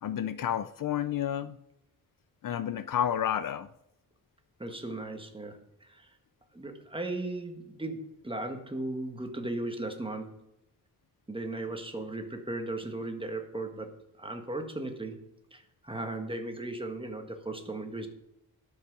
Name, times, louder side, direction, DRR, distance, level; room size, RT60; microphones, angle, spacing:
voice 1, 0.0-1.6 2.4-3.7, left 10 dB, 60° left, 0.5 m, -30 dB
voice 2, 4.6-6.1 6.5-10.4 11.3-15.2 15.5-18.1, right 2 dB, 15° right, 1.4 m, -37 dB
12.0 x 5.7 x 6.0 m
wide cardioid pair, 135°, 37 cm